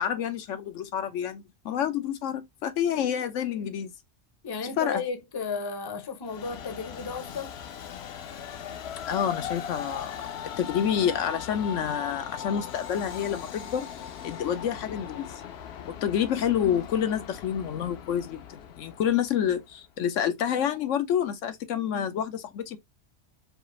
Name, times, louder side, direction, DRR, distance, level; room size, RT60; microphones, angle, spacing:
voice 1, 0.0-3.9 4.8-5.0 9.1-10.1 10.6-13.9 14.2-15.3 15.8-22.8, left 9 dB, 85° left, 1.1 m, -28 dB
voice 2, 4.4-7.6, left 5 dB, 25° left, 0.6 m, -34 dB
Train, 6.3-19.7, left 8 dB, 65° left, 0.8 m, -39 dB
5.1 x 2.5 x 3.1 m
omnidirectional pair, 1.3 m